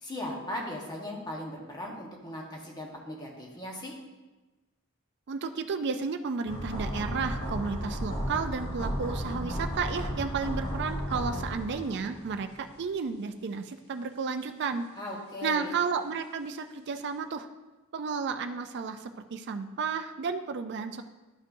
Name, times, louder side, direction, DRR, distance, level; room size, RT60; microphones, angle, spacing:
voice 1, 0.0-3.9 15.0-15.7, left 1 dB, 20° left, -1 dB, 1.2 m, -38 dB
voice 2, 5.3-14.8 15.4-17.5 17.9-21.0, right 5 dB, 55° right, 8 dB, 0.4 m, -32 dB
sound 1, 6.5-12.5 12.8-12.9, equal, 50° left, 2.4 m, -34 dB
12.0 x 5.3 x 2.7 m, 1.1 s
head